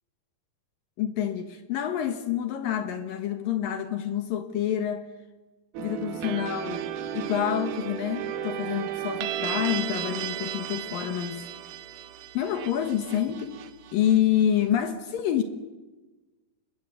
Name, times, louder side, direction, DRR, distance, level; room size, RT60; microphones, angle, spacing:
voice 1, 1.0-5.1 5.8-6.8 7.1-11.5 12.3-13.6 13.9-15.4, left 10 dB, 70° left, 8 dB, 3.0 m, -27 dB
sound 1, 5.7-14.6, right 11 dB, 85° right, 3.2 m, -34 dB
25.0 x 22.0 x 8.4 m, 1.2 s
omnidirectional pair, 4.3 m